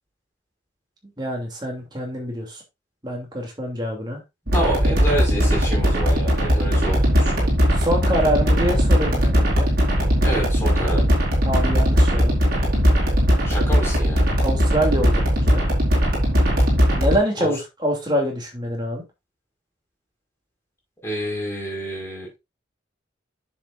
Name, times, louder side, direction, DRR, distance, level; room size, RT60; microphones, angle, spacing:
voice 1, 1.2-2.6 3.0-4.2 7.8-9.7 11.4-12.3 14.4-15.6 16.9-19.0, equal, 20° right, 2.7 m, -25 dB
voice 2, 4.5-7.5 10.2-11.1 13.4-14.2 17.4-17.5 21.0-22.3, right 1 dB, 15° left, 5.2 m, -28 dB
sound 1, 4.5-17.2, equal, 50° right, 4.6 m, -19 dB
10.0 x 7.4 x 2.5 m
head